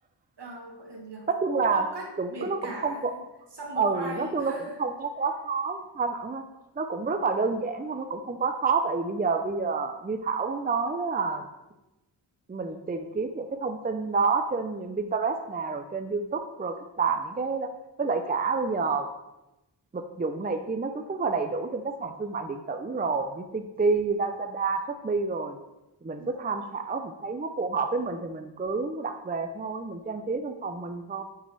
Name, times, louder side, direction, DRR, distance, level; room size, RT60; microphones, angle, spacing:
voice 1, 0.4-1.3 1.7-3.3 3.5-4.8 26.2-26.8, right 2 dB, 70° right, 1 dB, 1.6 m, -40 dB
voice 2, 1.3-1.8 2.2-2.6 2.8-3.1 3.8-4.5 4.8-6.4 6.8-11.5 12.5-17.7 18.0-19.1 19.9-25.6 26.0-31.2, right 4 dB, 20° right, 7 dB, 0.5 m, -29 dB
6.8 x 6.0 x 3.4 m, 0.97 s
cardioid pair, 60°, 43 cm